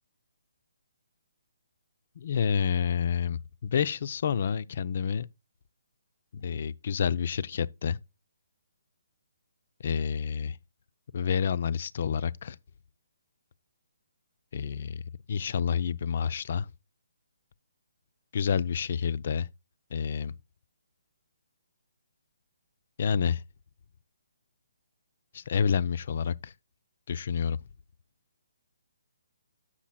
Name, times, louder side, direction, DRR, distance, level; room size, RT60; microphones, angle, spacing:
voice 1, 2.2-5.3 6.3-8.0 9.8-10.6 11.1-12.6 14.5-15.0 15.3-16.7 18.3-19.5 19.9-20.3 23.0-23.4 25.3-26.5 27.1-27.6, left 7 dB, 50° left, 0.5 m, -29 dB
9.9 x 7.4 x 2.3 m
hypercardioid pair, 155°, 0 cm